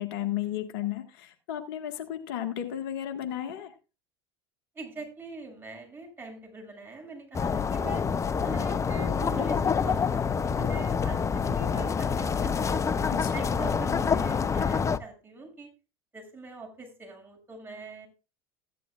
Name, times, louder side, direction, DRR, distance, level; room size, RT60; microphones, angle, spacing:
voice 1, 0.0-3.7 13.1-13.3, left 11 dB, 65° left, 7 dB, 1.6 m, -33 dB
voice 2, 4.7-8.0 8.4-12.8 13.3-15.7 16.1-18.1, right 2 dB, 15° right, 1 dB, 6.8 m, -42 dB
sound 1, 7.3-15.0, left 6 dB, 25° left, 0.6 m, -27 dB
15.5 x 11.0 x 2.4 m, 0.31 s
hypercardioid pair, 80°, 13 cm